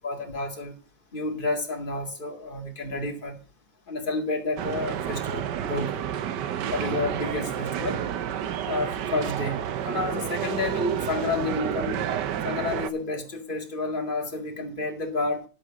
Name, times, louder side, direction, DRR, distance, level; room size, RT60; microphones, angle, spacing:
voice 1, 0.0-0.8 1.1-3.4 3.9-6.0 6.7-8.1 8.7-12.0 12.4-15.5, left 3 dB, 30° left, 2.1 m, -30 dB
sound 1, 4.6-12.9, right 9 dB, 80° right, 1.5 m, -30 dB
11.0 x 8.1 x 5.1 m
omnidirectional pair, 1.8 m